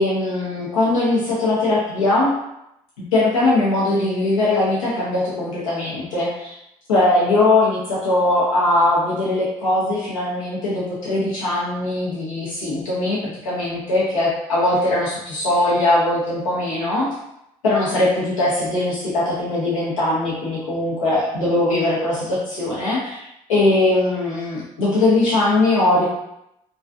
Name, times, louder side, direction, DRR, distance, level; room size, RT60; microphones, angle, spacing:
voice 1, 0.0-2.3 3.1-6.5 6.9-17.1 17.6-26.1, left 2 dB, 90° left, -7 dB, 0.6 m, -20 dB
2.4 x 2.3 x 2.3 m, 0.82 s
hypercardioid pair, 40°, 16 cm